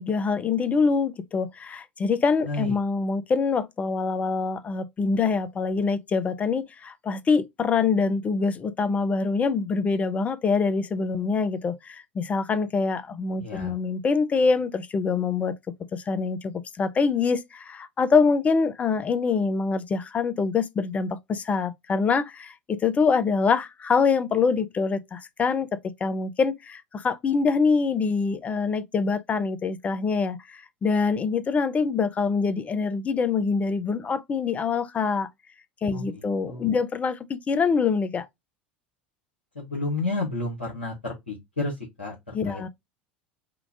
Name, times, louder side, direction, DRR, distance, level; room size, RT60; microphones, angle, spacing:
voice 1, 0.0-15.5 15.9-16.5 16.8-25.7 26.0-35.3 35.8-38.3 42.3-42.7, left 5 dB, 25° left, 0.5 m, -25 dB
voice 2, 2.4-2.8 13.4-13.7 35.9-36.7 39.5-42.7, left 2 dB, 85° left, 1.3 m, -31 dB
3.8 x 2.3 x 3.5 m
figure-of-eight pair, 75°, 6 cm